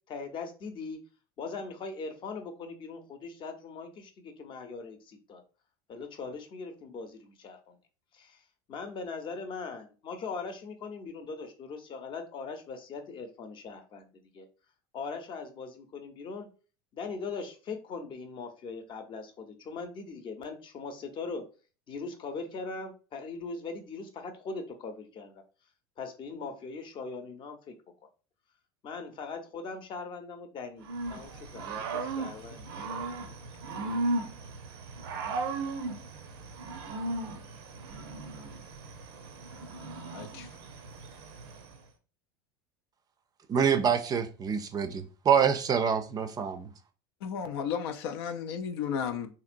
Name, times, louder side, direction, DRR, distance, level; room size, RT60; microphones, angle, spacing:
voice 1, 0.1-1.0 1.4-5.4 5.9-7.8 8.1-8.4 8.7-14.0 14.3-14.5 14.9-16.5 16.9-21.4 21.9-25.4 26.0-27.7 28.8-32.9, left 4 dB, 40° left, 0.7 m, -40 dB
Growling / Cricket, 30.8-41.8, right 3 dB, 90° right, 0.6 m, -36 dB
voice 2, 40.1-40.5 47.2-49.3, left 7 dB, 85° left, 0.4 m, -33 dB
voice 3, 43.5-46.7, right 7 dB, 30° right, 0.4 m, -26 dB
2.9 x 2.8 x 2.5 m
supercardioid pair, 105°, 13 cm